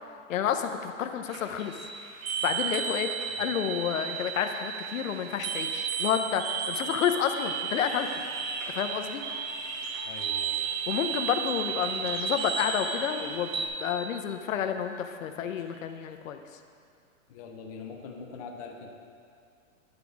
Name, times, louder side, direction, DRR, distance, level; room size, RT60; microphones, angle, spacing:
voice 1, 0.3-1.8 2.4-3.1 3.4-8.1 8.7-9.2 10.9-16.4, left 8 dB, 75° left, 7 dB, 0.8 m, -30 dB
sound 1, 1.3-13.7, right 7 dB, 80° right, 1.0 m, -34 dB
Alarm, 3.5-4.0 4.9-5.2 5.6-5.8 6.4-13.9 14.2-14.4 15.3-16.0, right 3 dB, 30° right, 0.7 m, -40 dB
sound 2, 7.7-12.6, right 3 dB, 65° right, 1.2 m, -45 dB
voice 2, 10.0-10.6 17.3-18.9, left 5 dB, 30° left, 1 dB, 0.5 m, -43 dB
10.5 x 4.7 x 5.2 m, 2.3 s
hypercardioid pair, 165°, 40 cm